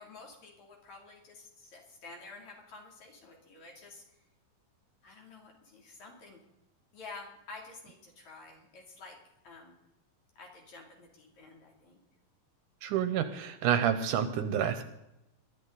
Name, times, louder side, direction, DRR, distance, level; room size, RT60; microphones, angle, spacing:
voice 1, 0.0-4.0 5.0-6.4 6.9-9.2 9.4-9.8 10.4-12.0, left 3 dB, 55° left, 0 dB, 4.1 m, -50 dB
voice 2, 12.8-14.8, right 9 dB, 75° right, 10 dB, 2.2 m, -29 dB
21.0 x 12.0 x 4.0 m, 0.88 s
omnidirectional pair, 4.0 m